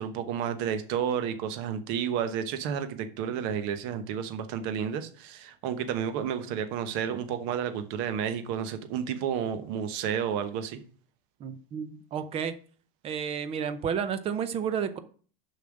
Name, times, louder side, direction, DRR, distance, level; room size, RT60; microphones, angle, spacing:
voice 1, 0.0-10.8, right 8 dB, 40° right, 10 dB, 1.1 m, -31 dB
voice 2, 11.4-12.6 13.0-15.0, right 7 dB, 20° right, 12 dB, 0.6 m, -31 dB
7.1 x 5.5 x 6.4 m, 0.43 s
supercardioid pair, 160°, 29 cm